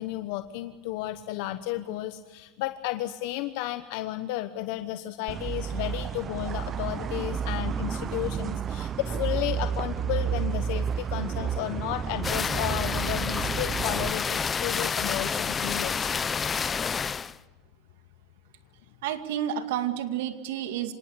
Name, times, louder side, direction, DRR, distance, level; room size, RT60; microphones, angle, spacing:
voice 1, 0.0-16.1, left 14 dB, 70° left, 9 dB, 1.1 m, -33 dB
sound 1, 5.3-14.1, right 7 dB, 30° right, 0.7 m, -31 dB
sound 2, 12.2-17.3, left 6 dB, 25° left, 0.7 m, -29 dB
voice 2, 19.0-20.9, right 10 dB, 80° right, 9 dB, 2.1 m, -30 dB
26.0 x 19.0 x 8.3 m, 1.3 s
supercardioid pair, 115°, 0 cm